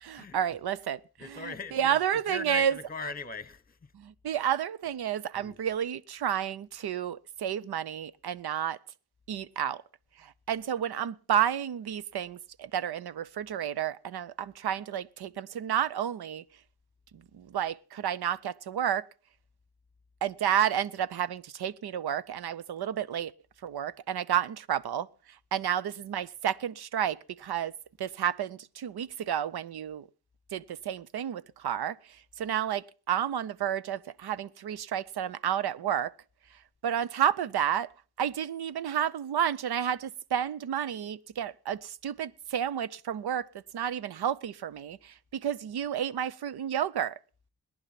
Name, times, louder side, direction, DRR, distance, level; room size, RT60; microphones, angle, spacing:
voice 1, 0.0-1.0 1.7-2.8 4.0-8.8 9.3-9.8 10.5-16.4 17.5-19.0 20.2-23.3 23.6-25.1 25.5-27.7 28.0-30.0 30.5-32.0 32.4-36.1 36.8-37.9 38.2-43.4 43.7-45.0 45.4-47.1, right 9 dB, 80° right, 0.7 m, -31 dB
voice 2, 1.2-3.9 5.3-5.7, left 3 dB, 20° left, 1.1 m, -40 dB
18.5 x 10.5 x 5.8 m
wide cardioid pair, 115°, 39 cm